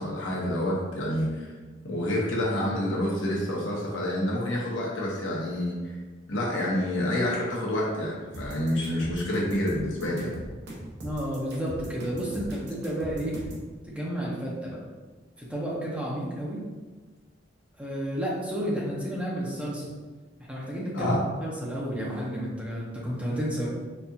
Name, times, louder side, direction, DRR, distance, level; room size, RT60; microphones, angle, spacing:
voice 1, 0.0-1.5 1.8-5.9 6.3-10.3 20.9-21.2, left 1 dB, 75° left, -4 dB, 0.9 m, -28 dB
sound 1, 8.3-13.7, right 1 dB, 60° right, 0.7 m, -40 dB
voice 2, 11.0-13.4 13.9-14.8 15.4-16.6 17.8-19.9 20.5-23.7, equal, 5° right, -5 dB, 0.6 m, -31 dB
4.2 x 2.4 x 2.7 m, 1.3 s
head